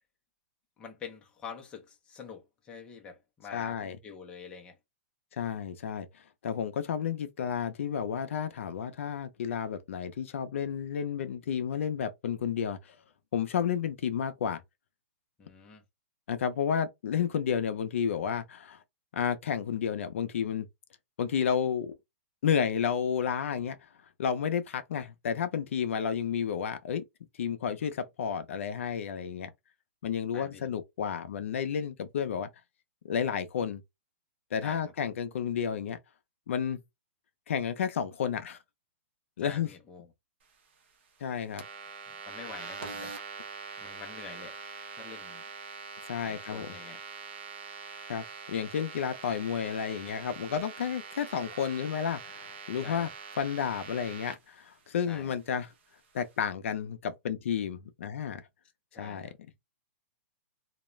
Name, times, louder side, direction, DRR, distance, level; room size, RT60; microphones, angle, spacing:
voice 1, 0.8-4.8 13.6-13.7 15.4-15.8 30.3-30.7 34.6-34.9 39.4-40.1 42.2-43.1 43.8-44.6 44.9-45.4 46.2-47.0 52.8-53.1 55.1-55.4 58.9-59.3, left 5 dB, 15° left, 0.5 m, -46 dB
voice 2, 3.5-4.0 5.4-6.1 6.4-13.0 13.3-14.6 16.3-18.8 19.1-20.7 21.2-21.9 22.4-23.8 24.2-27.0 27.4-29.5 30.0-32.5 33.0-33.8 34.5-36.0 36.5-36.8 37.5-38.6 39.4-39.7 41.2-41.6 46.1-46.7 48.1-53.1 53.4-55.7 56.1-58.4 59.0-59.3, left 7 dB, 70° left, 0.4 m, -31 dB
sound 1, 41.6-54.3, right 5 dB, 55° right, 0.7 m, -43 dB
2.3 x 2.1 x 3.0 m
hypercardioid pair, 160°, 7 cm